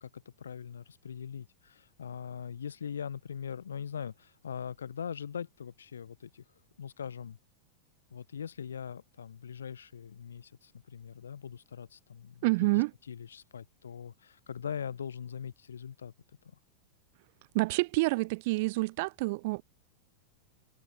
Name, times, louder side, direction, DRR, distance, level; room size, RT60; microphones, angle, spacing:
voice 1, 0.0-6.4 6.8-7.4 8.1-16.1, left 7 dB, 70° left, 1.0 m, -41 dB
voice 2, 12.4-12.9 17.5-19.6, right 24 dB, 50° right, 0.4 m, -28 dB
figure-of-eight pair, 90°, 0 cm